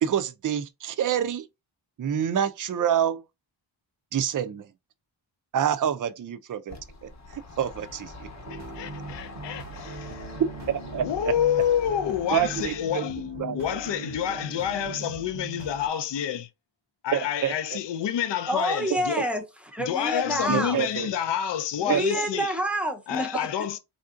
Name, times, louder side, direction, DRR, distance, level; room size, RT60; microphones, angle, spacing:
voice 1, 0.0-1.5 2.0-3.2 4.1-4.7 5.5-6.8 7.0-8.3 10.7-11.0 12.3-13.0 13.4-13.6 17.1-17.5 20.5-21.1 21.9-22.2, right 9 dB, 45° right, 0.4 m, -27 dB
sound 1, 6.7-12.8, left 2 dB, 35° left, 0.8 m, -43 dB
sound 2, 8.4-15.9, right 3 dB, 75° right, 0.7 m, -40 dB
voice 2, 8.5-10.4 10.9-16.5 17.0-19.2 19.8-22.5 23.1-23.8, left 9 dB, 65° left, 0.5 m, -28 dB
voice 3, 18.5-20.8 21.8-23.5, equal, 5° right, 0.6 m, -28 dB
3.5 x 2.5 x 2.4 m
wide cardioid pair, 60°, 47 cm